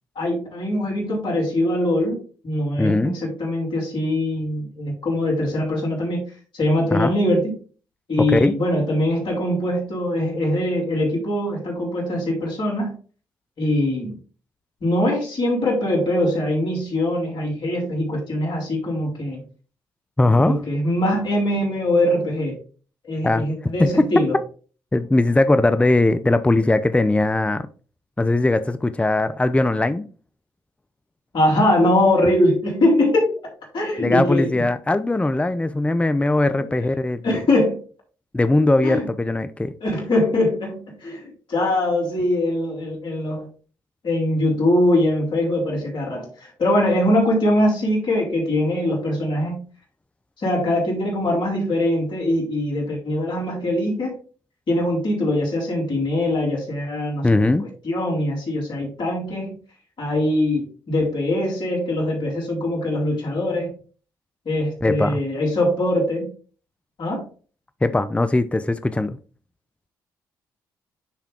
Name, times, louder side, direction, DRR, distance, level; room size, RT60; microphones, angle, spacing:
voice 1, 0.2-6.2 6.5-7.5 8.1-12.9 13.6-14.2 14.8-19.4 20.2-22.6 23.0-24.4 31.3-34.6 36.8-36.9 37.2-37.8 38.8-39.1 39.8-43.5 44.0-49.6 50.4-54.2 54.7-57.3 57.8-59.5 60.0-63.7 64.4-66.3 67.0-67.3, left 1 dB, 60° left, 4.2 m, -22 dB
voice 2, 2.8-3.2 6.9-7.1 8.2-8.5 20.2-20.6 23.2-23.5 23.8-24.1 24.9-27.7 28.2-30.1 34.0-37.4 38.3-39.7 57.2-57.6 64.8-65.2 67.8-69.2, left 2 dB, 15° left, 0.6 m, -20 dB
10.0 x 3.6 x 3.7 m
hypercardioid pair, 45°, 9 cm